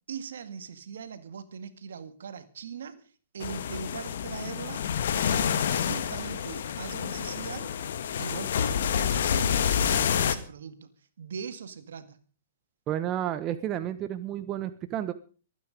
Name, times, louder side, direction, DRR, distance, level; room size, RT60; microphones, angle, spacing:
voice 1, 0.1-4.9 5.2-7.8 8.2-12.2, right 6 dB, 75° right, 1.9 m, -40 dB
sound 1, 3.4-10.4, left 8 dB, 70° left, 1.6 m, -28 dB
voice 2, 12.9-15.1, right 11 dB, 30° right, 1.0 m, -31 dB
23.5 x 9.4 x 5.2 m
hypercardioid pair, 130°, 0 cm